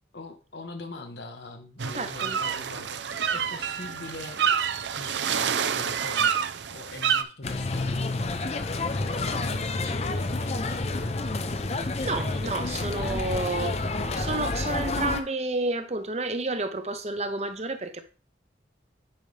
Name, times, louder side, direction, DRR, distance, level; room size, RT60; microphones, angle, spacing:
voice 1, 0.1-4.4 4.9-6.4 6.7-10.9 12.0-13.8, left 2 dB, 70° left, 1.0 m, -42 dB
sound 1, 1.8-7.2, right 7 dB, 75° right, 0.6 m, -28 dB
voice 2, 1.9-2.4 11.7-13.8 14.1-18.0, right 2 dB, 35° right, 0.7 m, -30 dB
sound 2, 7.4-15.2, left 2 dB, 35° left, 0.6 m, -29 dB
8.7 x 5.4 x 3.3 m
head